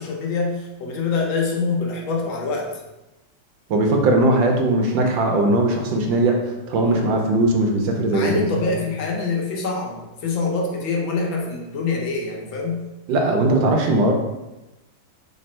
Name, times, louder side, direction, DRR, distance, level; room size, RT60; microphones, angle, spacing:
voice 1, 0.0-2.7 6.8-7.1 8.1-12.8, left 4 dB, 75° left, -1 dB, 1.5 m, -25 dB
voice 2, 3.7-8.5 13.1-14.1, right 2 dB, 75° right, 2 dB, 1.3 m, -19 dB
3.4 x 3.2 x 4.3 m, 1.0 s
omnidirectional pair, 2.2 m